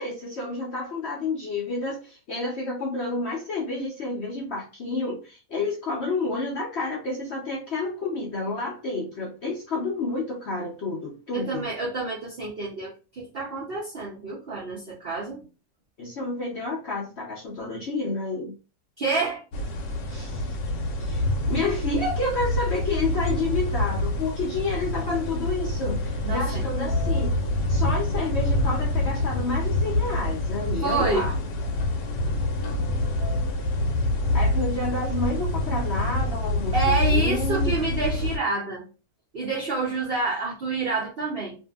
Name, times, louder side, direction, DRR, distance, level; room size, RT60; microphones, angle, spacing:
voice 1, 0.0-11.7 16.0-18.5 20.1-20.5 21.0-27.3 27.7-31.3 34.3-37.7, left 3 dB, 65° left, -4 dB, 0.6 m, -30 dB
voice 2, 11.3-15.4 19.0-19.4 26.2-26.6 30.8-31.3 36.7-38.8 39.3-41.6, right 3 dB, 80° right, -3 dB, 0.5 m, -28 dB
sound 1, 19.5-38.4, left 1 dB, 85° left, 1.2 m, -26 dB
2.7 x 2.6 x 2.3 m, 0.33 s
omnidirectional pair, 1.9 m